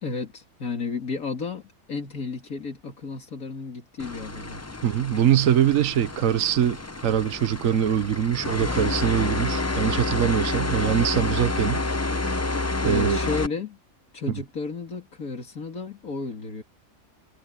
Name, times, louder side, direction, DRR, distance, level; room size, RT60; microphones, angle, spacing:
voice 1, 0.0-1.6 1.9-4.6 12.8-13.8 14.1-16.6, left 4 dB, 80° left, 3.0 m, -32 dB
sound 1, 4.0-13.5, left 2 dB, 15° left, 0.5 m, -29 dB
voice 2, 4.8-11.8 12.8-13.2 14.3-14.4, right 9 dB, 70° right, 1.3 m, -23 dB
omnidirectional pair, 1.5 m